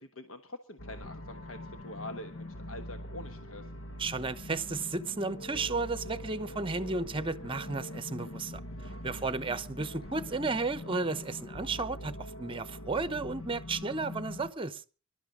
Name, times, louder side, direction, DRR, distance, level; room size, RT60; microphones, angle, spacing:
voice 1, 0.0-3.7 9.1-9.6, left 1 dB, 70° left, 1.3 m, -45 dB
sound 1, 0.8-14.5, left 1 dB, 90° left, 1.4 m, -43 dB
voice 2, 4.0-8.6 9.0-14.8, right 3 dB, 25° right, 0.9 m, -33 dB
25.5 x 12.0 x 3.8 m
head